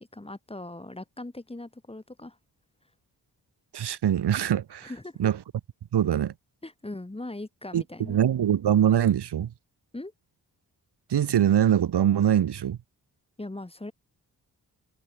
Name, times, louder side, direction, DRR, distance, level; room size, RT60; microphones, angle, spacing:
voice 1, 0.1-2.4 4.8-5.3 6.6-8.2 9.9-10.1 13.4-13.9, left 2 dB, 15° left, 4.9 m, -40 dB
voice 2, 3.7-4.9 5.2-5.4 5.9-6.3 7.7-7.8 8.1-9.5 11.1-12.8, right 10 dB, 85° right, 1.6 m, -23 dB
wide cardioid pair, 130°, 39 cm